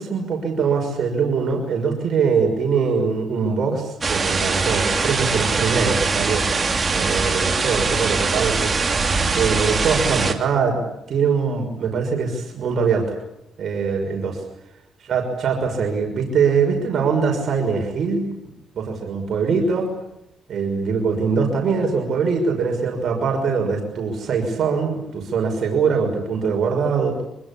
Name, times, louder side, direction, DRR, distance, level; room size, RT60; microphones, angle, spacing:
voice 1, 0.0-6.7 6.9-8.7 9.3-10.8 11.1-13.0 13.6-14.4 15.1-18.2 18.8-19.9 20.5-27.2, right 5 dB, 55° right, 2 dB, 6.0 m, -22 dB
sound 1, 4.0-10.3, right 4 dB, 25° right, 3.0 m, -22 dB
25.5 x 23.5 x 8.7 m, 0.84 s
cardioid pair, 110°, 0 cm